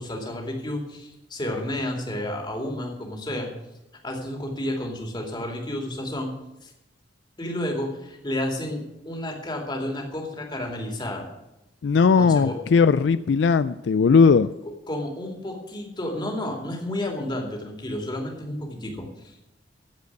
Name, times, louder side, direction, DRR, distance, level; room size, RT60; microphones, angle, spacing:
voice 1, 0.0-3.5 4.0-6.3 6.6-6.7 7.4-11.3 12.2-12.6 14.9-19.3, left 1 dB, 25° left, 2 dB, 2.5 m, -31 dB
voice 2, 11.8-14.5, left 5 dB, 75° left, 15 dB, 0.4 m, -18 dB
14.5 x 5.2 x 9.4 m, 0.92 s
head